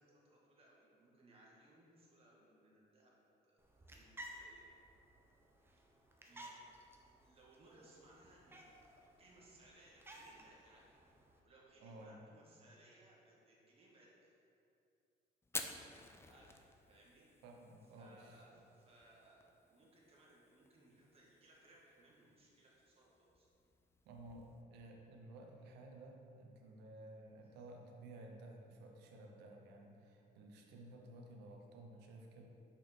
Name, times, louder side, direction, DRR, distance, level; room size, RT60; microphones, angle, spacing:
voice 1, 0.0-3.6 3.9-4.7 6.3-6.6 7.0-8.9 9.2-11.0 11.4-14.4 16.3-17.3 17.9-23.5, right 1 dB, 35° right, -4 dB, 1.7 m, -65 dB
sound 1, 3.6-11.4, right 1 dB, 15° right, 0.8 m, -57 dB
voice 2, 11.8-12.2 17.4-18.6 24.0-32.5, right 1 dB, 85° right, 1 dB, 1.0 m, -55 dB
Fire, 15.4-24.6, left 3 dB, 15° left, 0.5 m, -53 dB
6.2 x 5.8 x 4.4 m, 2.7 s
cardioid pair, 110°, 17 cm